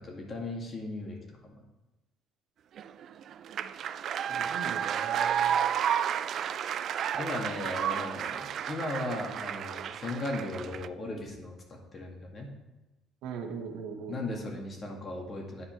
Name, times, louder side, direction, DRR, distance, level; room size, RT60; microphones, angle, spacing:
voice 1, 0.0-1.6 7.1-12.5 14.1-15.7, left 2 dB, 40° left, 1 dB, 2.0 m, -37 dB
sound 1, 2.8-10.9, right 9 dB, 60° right, 0.3 m, -31 dB
voice 2, 4.3-5.5 13.2-14.2, right 5 dB, 75° right, 4 dB, 1.1 m, -40 dB
9.8 x 4.4 x 4.5 m, 1.1 s
supercardioid pair, 70°, 0 cm